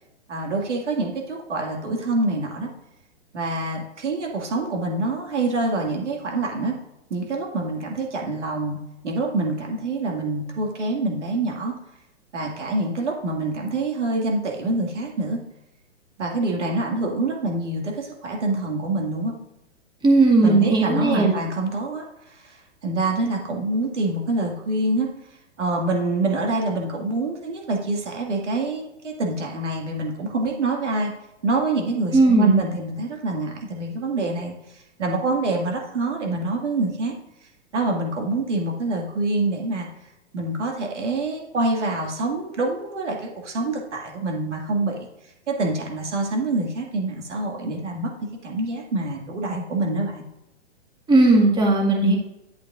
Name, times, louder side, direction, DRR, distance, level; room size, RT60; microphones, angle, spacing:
voice 1, 0.3-2.7 3.3-6.8 7.1-8.8 9.0-11.7 12.3-15.4 16.2-19.3 20.4-22.0 22.4-22.6 22.8-25.1 25.6-31.1 31.4-34.5 35.0-37.1 37.7-39.9 40.3-45.1 45.5-48.1 48.4-50.2, right 2 dB, 80° right, 0 dB, 2.3 m, -26 dB
voice 2, 20.0-21.3 32.1-32.5 51.1-52.2, right 2 dB, 10° right, -1 dB, 2.0 m, -16 dB
10.5 x 8.3 x 2.5 m, 0.90 s
hypercardioid pair, 125°, 35 cm